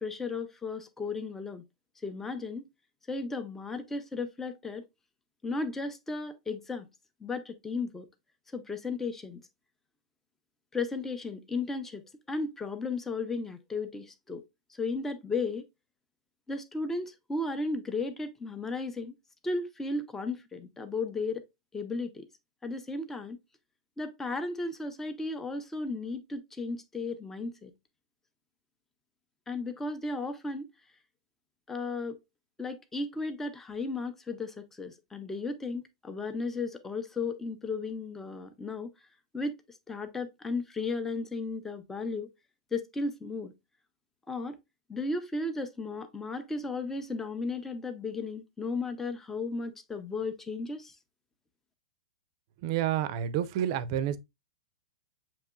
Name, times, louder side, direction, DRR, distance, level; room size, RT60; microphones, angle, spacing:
voice 1, 0.0-1.6 2.0-2.7 3.1-4.8 5.4-6.9 7.2-8.1 8.5-9.4 10.7-14.4 14.7-15.6 16.5-19.1 19.4-21.4 21.7-22.3 22.6-23.4 24.0-27.7 29.5-30.6 31.7-32.2 32.6-38.9 39.3-39.5 39.9-42.3 42.7-43.5 44.3-44.6 44.9-50.9, left 3 dB, 10° left, 0.7 m, -35 dB
voice 2, 52.6-54.2, right 10 dB, 50° right, 0.5 m, -29 dB
7.0 x 3.0 x 2.3 m
hypercardioid pair, 125°, 3 cm